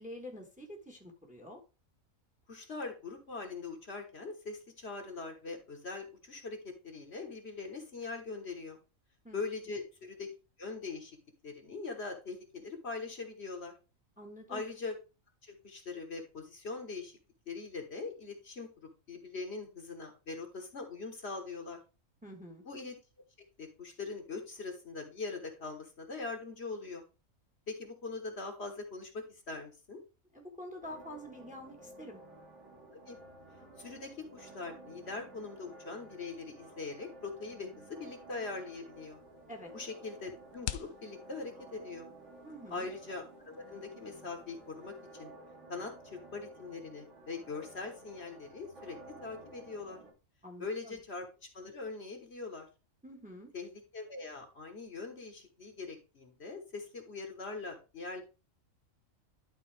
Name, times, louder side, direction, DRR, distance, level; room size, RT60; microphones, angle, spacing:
voice 1, 0.0-1.6 9.2-9.4 14.2-14.6 22.2-22.6 30.3-32.2 39.5-39.7 42.4-42.9 50.4-51.0 53.0-53.5, left 1 dB, 5° right, 3 dB, 1.2 m, -47 dB
voice 2, 2.5-8.8 9.3-10.3 10.6-11.2 11.4-13.8 14.5-15.0 15.4-17.2 17.5-21.8 22.7-23.0 23.6-27.0 27.7-30.0 33.1-33.2 33.8-39.2 39.7-42.1 42.7-45.3 45.7-50.0 50.6-51.3 51.5-52.7 53.5-58.2, left 4 dB, 50° left, 3 dB, 1.6 m, -42 dB
sound 1, 30.8-50.1, right 2 dB, 60° right, 2.5 m, -53 dB
sound 2, 38.9-45.2, left 12 dB, 75° left, 1.0 m, -49 dB
11.5 x 4.0 x 3.4 m, 0.30 s
omnidirectional pair, 1.4 m